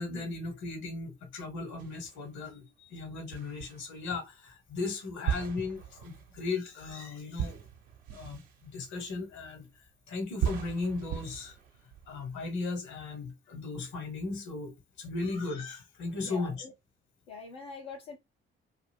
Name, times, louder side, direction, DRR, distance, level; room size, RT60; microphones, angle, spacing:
voice 1, 0.0-7.6 8.1-9.7 10.1-11.6 12.1-16.6, left 3 dB, 70° left, 1.2 m, -36 dB
sound 1, 1.8-2.5 3.3-4.2 5.3-9.8 10.4-12.4, right 9 dB, 75° right, 0.7 m, -38 dB
voice 2, 16.2-16.7 17.3-18.2, left 4 dB, 85° left, 0.6 m, -44 dB
2.5 x 2.4 x 3.4 m
hypercardioid pair, 45°, 30 cm